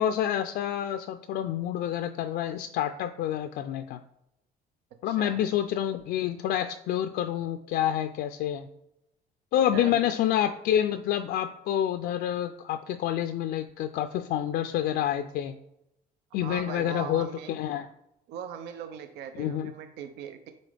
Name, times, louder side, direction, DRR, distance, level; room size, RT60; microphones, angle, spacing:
voice 1, 0.0-4.0 5.0-8.7 9.5-15.6 16.3-17.9 19.4-19.7, left 11 dB, 75° left, 9 dB, 0.4 m, -28 dB
voice 2, 5.0-5.4 9.7-10.1 16.4-17.6 18.3-20.5, right 8 dB, 85° right, 8 dB, 0.6 m, -40 dB
8.3 x 4.1 x 3.4 m, 0.84 s
cardioid pair, 110°, 17 cm